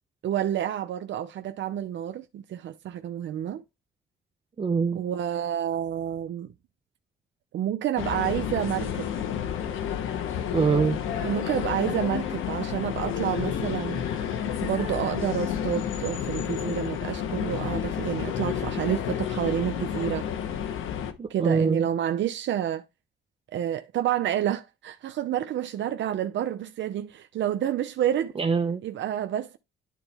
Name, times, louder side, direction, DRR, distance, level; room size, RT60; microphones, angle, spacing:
voice 1, 0.2-3.6 4.9-6.5 7.5-9.1 11.2-14.0 14.6-20.2 21.3-22.8 23.5-28.3 28.8-29.6, right 10 dB, 70° right, 0.7 m, -29 dB
voice 2, 4.6-5.0 10.5-11.0 21.2-21.9 28.4-28.8, right 5 dB, 30° right, 0.7 m, -23 dB
sound 1, 8.0-21.1, left 9 dB, 85° left, 1.1 m, -30 dB
11.0 x 4.0 x 3.4 m
cardioid pair, 90°, 20 cm